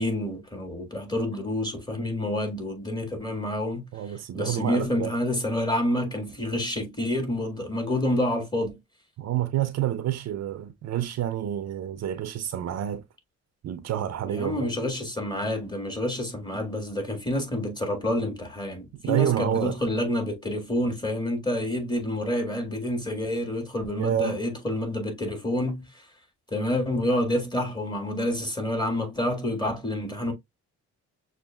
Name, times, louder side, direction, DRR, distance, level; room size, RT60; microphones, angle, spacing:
voice 1, 0.0-3.9 4.3-8.8 14.3-25.8 26.5-30.3, left 1 dB, 15° left, 1.8 m, -28 dB
voice 2, 3.9-5.1 9.2-13.0 13.6-14.7 18.9-19.8 24.0-24.4, right 11 dB, 60° right, 0.6 m, -28 dB
6.3 x 2.5 x 2.3 m
cardioid pair, 90°, 30 cm